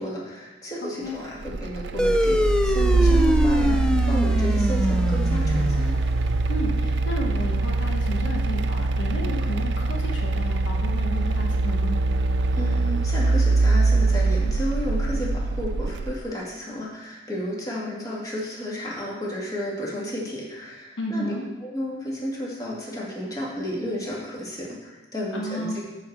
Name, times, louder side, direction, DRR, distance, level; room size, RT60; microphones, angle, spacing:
voice 1, 0.0-5.9 12.5-21.3 21.6-25.8, equal, 20° left, -5 dB, 2.1 m, -32 dB
voice 2, 0.8-1.2 6.5-12.0 21.0-21.5 25.3-25.8, equal, 80° left, 0 dB, 1.2 m, -32 dB
sound 1, 1.4-16.1, right 3 dB, 65° right, 0.4 m, -23 dB
sound 2, 2.0-6.9, equal, 5° left, 0.4 m, -24 dB
8.2 x 4.8 x 7.3 m, 1.1 s
head